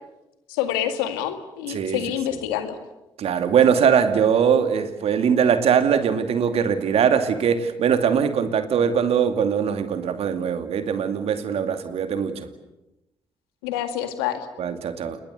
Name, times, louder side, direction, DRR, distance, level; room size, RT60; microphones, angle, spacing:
voice 1, 0.5-2.8 13.6-14.5, left 10 dB, 90° left, 9 dB, 2.1 m, -27 dB
voice 2, 1.7-2.0 3.2-12.5 14.6-15.2, right 7 dB, 65° right, 9 dB, 2.5 m, -21 dB
29.0 x 21.0 x 8.3 m, 0.92 s
hypercardioid pair, 45°, 11 cm